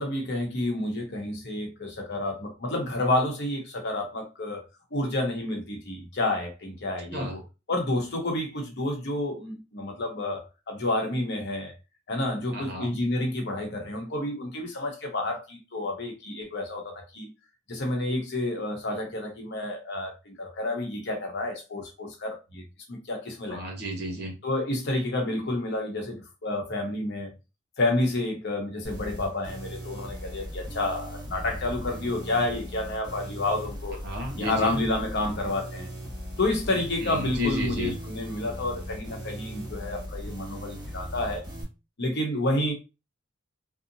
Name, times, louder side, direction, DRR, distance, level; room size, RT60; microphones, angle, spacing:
voice 1, 0.0-4.6 4.9-7.4 7.7-11.7 12.1-17.3 17.7-23.6 24.4-27.3 27.8-34.0 34.4-35.9 36.4-41.4 42.0-42.7, left 2 dB, 55° left, 0.9 m, -30 dB
voice 2, 12.5-12.9 23.5-24.3 34.0-34.8 37.0-37.9, equal, 55° right, 0.9 m, -32 dB
sound 1, 28.8-41.6, equal, 20° right, 1.1 m, -38 dB
2.7 x 2.0 x 2.6 m
head